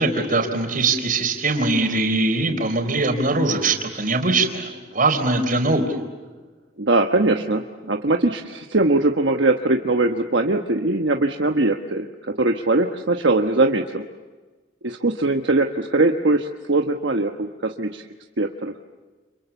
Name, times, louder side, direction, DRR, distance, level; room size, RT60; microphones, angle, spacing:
voice 1, 0.0-6.0, right 2 dB, 50° right, 5 dB, 4.1 m, -21 dB
voice 2, 6.8-12.1 12.4-14.1 14.8-18.0 18.4-18.7, right 2 dB, 70° right, 4 dB, 1.2 m, -21 dB
30.0 x 27.5 x 7.1 m, 1.3 s
head